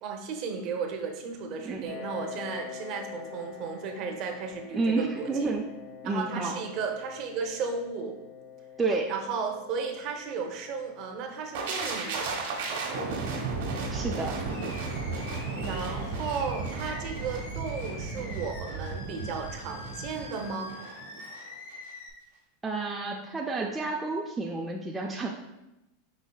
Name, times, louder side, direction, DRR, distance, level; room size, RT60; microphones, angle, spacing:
voice 1, 0.0-5.5 6.0-8.2 9.1-12.4 15.5-20.7, right 5 dB, 45° right, 3 dB, 0.7 m, -34 dB
voice 2, 1.6-2.0 4.7-5.6 6.0-6.6 8.8-9.1 13.9-14.4 22.6-25.3, right 3 dB, 15° right, -1 dB, 0.4 m, -30 dB
Piano, 1.8-17.2, left 7 dB, 65° left, 1.4 m, -47 dB
sound 1, 11.5-21.4 21.7-21.9, right 4 dB, 70° right, 1.1 m, -34 dB
Animal, 14.1-22.1, left 3 dB, 90° left, 0.8 m, -45 dB
5.1 x 3.9 x 2.3 m, 0.95 s
supercardioid pair, 130°, 0 cm